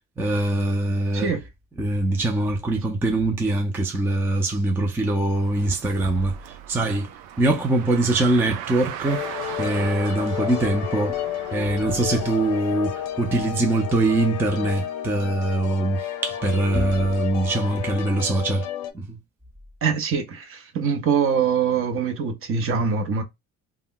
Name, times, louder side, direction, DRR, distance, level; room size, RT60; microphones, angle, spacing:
voice 1, 0.2-1.3 1.8-7.1 7.4-9.2 9.6-11.2 11.5-18.6 19.1-19.2, right 2 dB, 5° right, 0.4 m, -23 dB
Car, 5.2-13.8, right 10 dB, 85° right, 0.5 m, -39 dB
sound 1, 9.0-18.9, left 11 dB, 65° left, 0.7 m, -31 dB
voice 2, 19.8-23.2, right 6 dB, 40° right, 0.7 m, -23 dB
2.2 x 2.0 x 3.7 m
cardioid pair, 110°, 33 cm